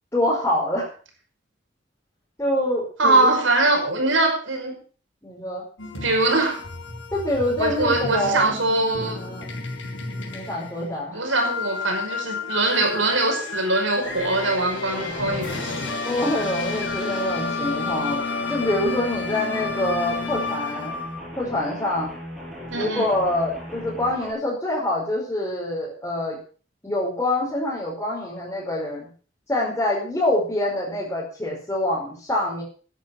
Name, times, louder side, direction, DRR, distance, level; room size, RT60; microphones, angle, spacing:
voice 1, 0.1-0.9 2.4-3.3 5.2-5.6 7.1-8.5 9.1-9.5 10.3-11.2 16.1-20.9 21.4-22.1 22.7-26.4 26.8-29.1 29.5-32.6, left 1 dB, 15° left, -7 dB, 5.1 m, -25 dB
voice 2, 3.0-4.8 5.9-6.6 7.6-9.2 11.1-15.7 22.7-23.1, right 2 dB, 85° right, 2 dB, 5.8 m, -22 dB
sound 1, 5.8-21.2, left 4 dB, 85° left, 5.3 m, -31 dB
sound 2, 14.9-24.3, equal, ahead, 5.7 m, -38 dB
13.5 x 10.5 x 6.2 m, 0.40 s
head